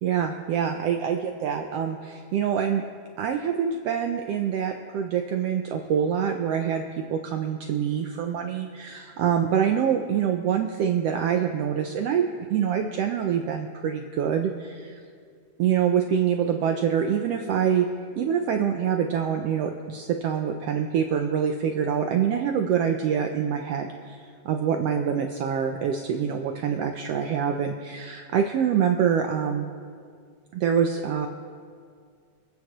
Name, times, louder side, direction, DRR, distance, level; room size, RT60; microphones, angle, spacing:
voice 1, 0.0-2.8 3.2-15.0 15.6-17.9 18.2-29.7 30.5-31.3, right 8 dB, 90° right, 4 dB, 1.3 m, -25 dB
26.0 x 8.8 x 3.0 m, 2.1 s
omnidirectional pair, 3.5 m